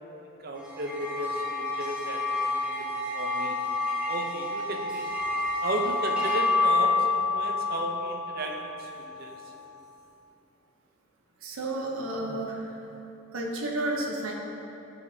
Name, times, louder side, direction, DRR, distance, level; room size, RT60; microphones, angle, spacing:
voice 1, 0.2-3.6 4.1-5.1 5.6-9.4, right 1 dB, 45° right, 1 dB, 0.7 m, -35 dB
sound 1, 0.6-9.2, left 3 dB, 5° right, 1.3 m, -29 dB
voice 2, 11.4-12.7 13.3-14.3, right 2 dB, 80° right, -1 dB, 0.7 m, -31 dB
9.7 x 5.0 x 2.7 m, 2.9 s
head